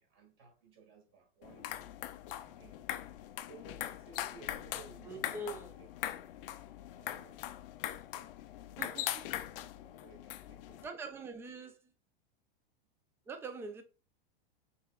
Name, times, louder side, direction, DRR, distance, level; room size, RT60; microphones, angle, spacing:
voice 1, 0.0-1.9 2.4-2.8 3.5-6.3 6.9-7.4 7.8-8.0 8.4-8.5 8.8-10.9, right 4 dB, 45° right, 2.0 m, -58 dB
sound 1, 1.4-10.9, left 13 dB, 65° left, 0.5 m, -41 dB
voice 2, 5.0-5.7 8.8-9.2 10.8-11.8 13.3-13.8, right 3 dB, 10° right, 0.4 m, -43 dB
5.4 x 3.6 x 2.3 m
supercardioid pair, 130°, 30 cm